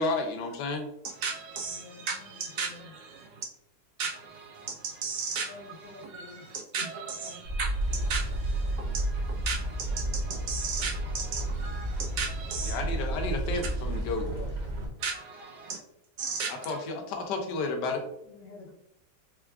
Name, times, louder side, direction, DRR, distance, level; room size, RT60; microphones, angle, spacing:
voice 1, 0.0-0.9 12.7-14.3 16.5-18.1, left 3 dB, 80° left, 1.2 m, -31 dB
voice 2, 1.0-3.5 4.0-12.9 13.6-14.0 15.0-15.8 16.2-16.9, right 5 dB, 70° right, 1.2 m, -36 dB
voice 3, 1.6-2.9 5.4-6.6 14.3-14.5 18.2-18.7, left 3 dB, 55° left, 1.2 m, -49 dB
sound 1, 7.4-14.9, right 1 dB, 55° right, 1.2 m, -31 dB
4.5 x 2.3 x 2.2 m
omnidirectional pair, 1.9 m